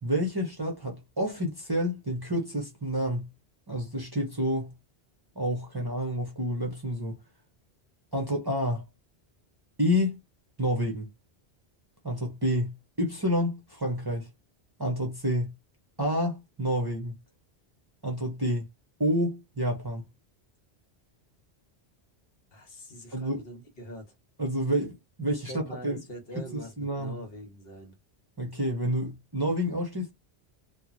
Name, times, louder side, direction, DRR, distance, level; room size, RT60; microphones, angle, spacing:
voice 1, 0.0-3.3 3.7-4.7 5.4-7.2 8.1-8.8 9.8-10.2 10.6-11.1 12.0-14.3 14.8-15.5 16.0-17.1 18.0-18.7 19.0-20.0 23.1-23.4 24.4-26.0 26.8-27.2 28.4-30.1, equal, 25° right, 0.7 m, -29 dB
voice 2, 22.5-24.1 25.3-27.9, equal, 65° left, 1.2 m, -43 dB
3.0 x 2.3 x 2.5 m
omnidirectional pair, 1.1 m